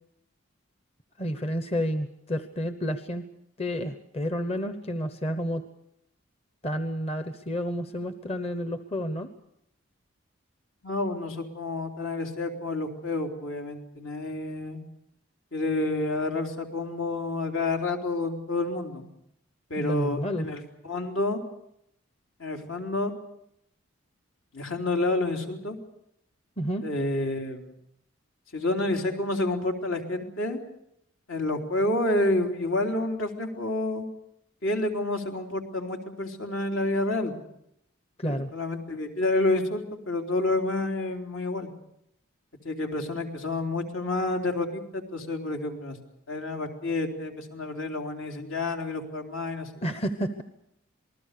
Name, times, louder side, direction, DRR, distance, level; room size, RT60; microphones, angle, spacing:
voice 1, 1.2-3.2 3.6-5.7 6.6-9.3 19.8-20.5 26.6-26.9 38.2-38.5 49.8-50.4, equal, 30° left, 9 dB, 1.0 m, -30 dB
voice 2, 10.8-14.8 15.5-19.1 19.7-21.4 22.4-23.1 24.5-25.8 26.8-27.7 28.5-30.6 31.3-34.1 34.6-37.3 38.2-41.7 42.6-46.0 46.3-49.9, left 2 dB, 75° left, 2 dB, 3.7 m, -29 dB
27.0 x 20.0 x 6.7 m, 0.77 s
head